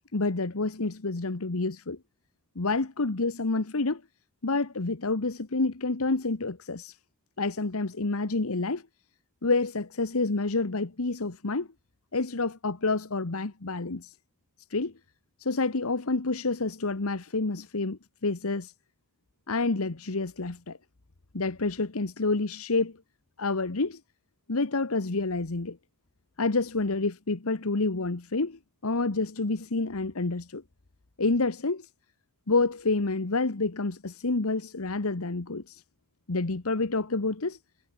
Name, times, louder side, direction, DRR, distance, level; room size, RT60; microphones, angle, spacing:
voice 1, 0.1-2.0 2.5-4.0 4.4-7.0 7.4-8.8 9.4-11.7 12.1-14.1 14.7-14.9 15.4-18.7 19.5-20.8 21.3-22.9 23.4-24.0 24.5-25.8 26.4-30.6 31.2-31.9 32.5-35.8 36.3-37.6, left 3 dB, 70° left, 1.2 m, -28 dB
head